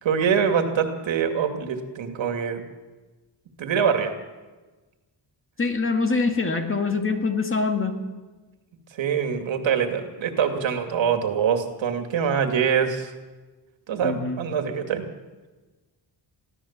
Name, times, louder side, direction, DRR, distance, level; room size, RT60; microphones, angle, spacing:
voice 1, 0.0-2.6 3.6-4.1 9.0-13.1 13.9-15.0, right 7 dB, 90° right, 5 dB, 2.5 m, -24 dB
voice 2, 5.6-7.9 14.0-14.4, left 4 dB, 30° left, 4 dB, 1.9 m, -24 dB
22.5 x 15.5 x 7.4 m, 1.2 s
wide cardioid pair, 170°, 44 cm